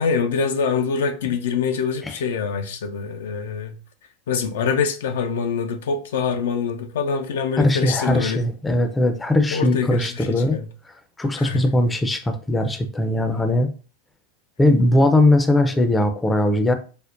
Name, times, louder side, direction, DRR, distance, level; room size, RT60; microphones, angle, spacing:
voice 1, 0.0-3.8 4.3-8.5 9.5-10.7 11.4-11.6, left 5 dB, 75° left, 0.4 m, -25 dB
voice 2, 7.6-10.6 11.2-13.7 14.6-16.7, left 1 dB, 10° left, 0.5 m, -19 dB
5.0 x 2.1 x 2.4 m
hypercardioid pair, 100°, 0 cm